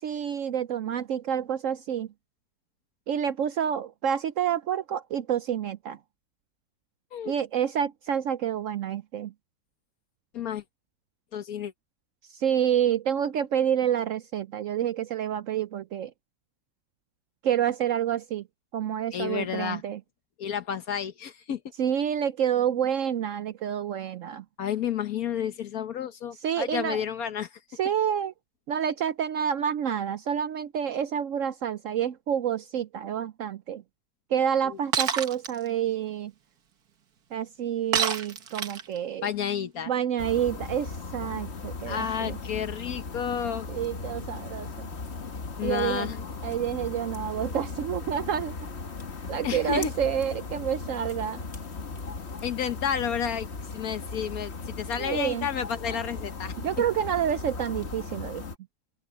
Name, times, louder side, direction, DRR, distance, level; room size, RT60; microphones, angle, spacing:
voice 1, 0.0-2.1 3.1-6.0 7.3-9.3 12.3-16.1 17.4-18.4 18.7-20.0 21.8-24.4 26.4-27.0 27.8-28.3 28.7-33.8 34.3-36.3 37.3-39.3 39.9-42.4 43.7-44.9 45.6-46.1 46.4-48.6 49.3-51.4 55.0-55.5 56.6-58.4, right 9 dB, 65° right, 0.9 m, -28 dB
voice 2, 11.3-11.7 19.1-19.8 20.4-21.6 24.6-27.5 39.2-39.9 41.9-43.7 45.6-46.2 49.4-49.9 52.4-53.5 53.7-56.5, left 8 dB, 70° left, 1.5 m, -31 dB
Shatter, 34.9-35.5 37.9-39.0, right 7 dB, 85° right, 1.9 m, -26 dB
sound 1, 40.2-58.6, left 4 dB, 45° left, 1.7 m, -37 dB
open air
omnidirectional pair, 1.6 m